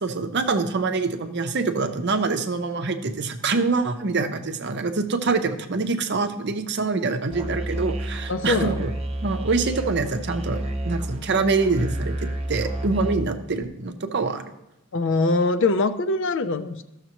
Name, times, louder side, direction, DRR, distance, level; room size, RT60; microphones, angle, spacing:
voice 1, 0.0-8.9 9.2-14.4, right 3 dB, 55° right, 7 dB, 0.7 m, -25 dB
Musical instrument, 7.3-13.2, right 1 dB, 30° right, 0.9 m, -30 dB
voice 2, 8.3-8.8 14.9-16.8, left 3 dB, 60° left, 11 dB, 0.5 m, -23 dB
14.0 x 6.5 x 3.0 m, 0.92 s
head